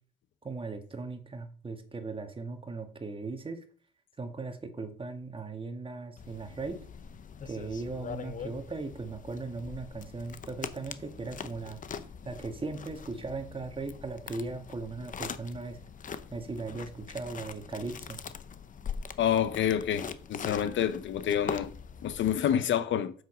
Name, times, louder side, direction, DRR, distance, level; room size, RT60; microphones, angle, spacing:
voice 1, 0.4-3.6 4.2-6.8 7.4-11.8 12.2-15.8 16.3-18.2, right 3 dB, 25° right, 1.7 m, -38 dB
sound 1, 6.2-22.4, left 6 dB, 40° left, 0.8 m, -42 dB
voice 2, 19.2-21.7 22.0-23.1, left 9 dB, 70° left, 0.8 m, -28 dB
7.5 x 6.5 x 5.0 m
cardioid pair, 90°, 20 cm